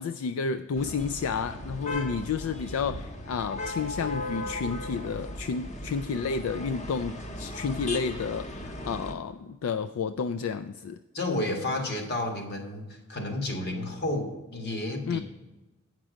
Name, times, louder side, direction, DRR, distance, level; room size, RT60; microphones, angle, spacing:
voice 1, 0.0-11.0 15.1-15.2, left 5 dB, 80° left, 10 dB, 0.4 m, -31 dB
sound 1, 0.7-9.1, left 1 dB, 35° left, 0.9 m, -37 dB
voice 2, 11.1-15.2, left 1 dB, 50° left, 2 dB, 1.7 m, -31 dB
8.9 x 6.0 x 6.2 m, 1.1 s
head